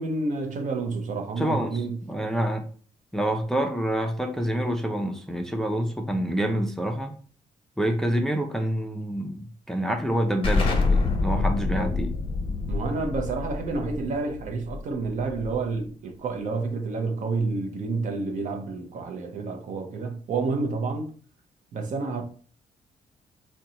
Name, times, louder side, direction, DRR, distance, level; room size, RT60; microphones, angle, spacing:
voice 1, 0.0-2.0 11.7-11.9 12.7-21.1 21.7-22.2, right 3 dB, 60° right, 0.7 m, -29 dB
voice 2, 1.4-2.6 3.1-7.1 7.8-12.1, right 1 dB, 5° left, 0.4 m, -27 dB
Explosion, 10.4-15.8, left 3 dB, 40° left, 0.8 m, -27 dB
3.9 x 2.2 x 2.8 m
cardioid pair, 115°, 14 cm